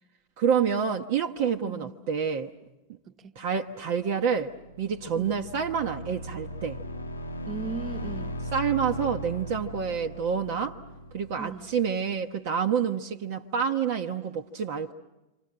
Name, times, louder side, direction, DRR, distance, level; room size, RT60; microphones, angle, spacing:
voice 1, 0.4-2.5 3.4-6.8 8.5-10.8 11.1-14.9, right 7 dB, 50° right, 1.0 m, -28 dB
voice 2, 1.6-1.9 3.1-3.4 5.1-5.4 7.5-8.4 11.4-11.7, right 5 dB, 30° right, 1.2 m, -38 dB
sound 1, 4.3-12.0, equal, 80° left, 0.9 m, -38 dB
28.0 x 26.0 x 7.8 m
figure-of-eight pair, 90°, 0 cm